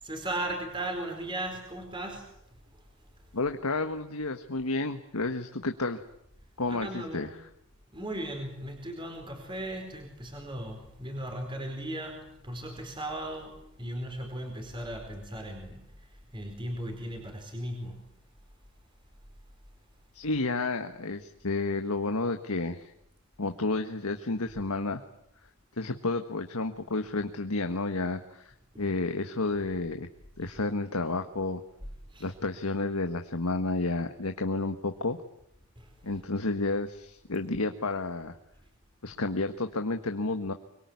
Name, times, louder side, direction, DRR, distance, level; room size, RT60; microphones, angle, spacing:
voice 1, 0.0-2.3 3.4-3.5 6.7-7.3 7.9-18.0 28.7-29.0 32.1-32.3 35.8-35.9, right 1 dB, 20° right, 4 dB, 4.5 m, -37 dB
voice 2, 3.3-6.0 6.6-7.3 20.1-22.9 23.4-25.0 25.8-28.5 28.8-30.1 30.4-31.6 32.2-35.2 36.0-38.4 39.0-40.5, left 3 dB, 85° left, 7 dB, 1.5 m, -31 dB
25.5 x 23.0 x 9.7 m, 0.76 s
head